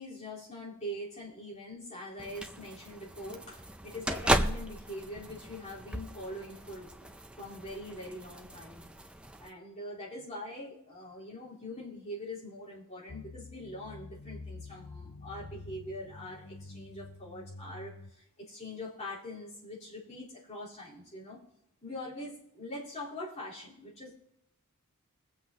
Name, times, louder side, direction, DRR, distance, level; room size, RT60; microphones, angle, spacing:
voice 1, 0.0-7.1 7.4-8.8 9.4-21.4 21.8-24.2, left 1 dB, 30° left, -8 dB, 4.0 m, -43 dB
sound 1, 2.2-9.5, right 1 dB, 5° right, 0.4 m, -36 dB
sound 2, 13.1-18.1, left 3 dB, 45° left, 0.6 m, -47 dB
22.0 x 7.7 x 2.9 m, 0.77 s
head